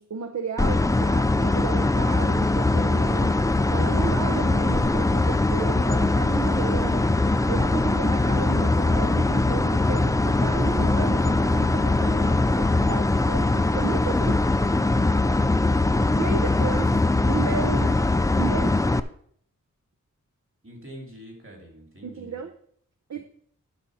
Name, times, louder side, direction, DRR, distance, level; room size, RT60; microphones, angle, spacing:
voice 1, 0.0-3.4 3.7-7.1 7.5-14.5 16.1-18.0 18.4-18.8 22.0-22.5 23.1-23.2, right 6 dB, 60° right, 5 dB, 0.8 m, -33 dB
sound 1, 0.6-19.0, left 2 dB, 10° left, 0.4 m, -21 dB
voice 2, 20.6-22.4 23.1-23.2, equal, 40° right, 2 dB, 2.8 m, -44 dB
11.0 x 4.3 x 6.3 m, 0.62 s
wide cardioid pair, 105°, 31 cm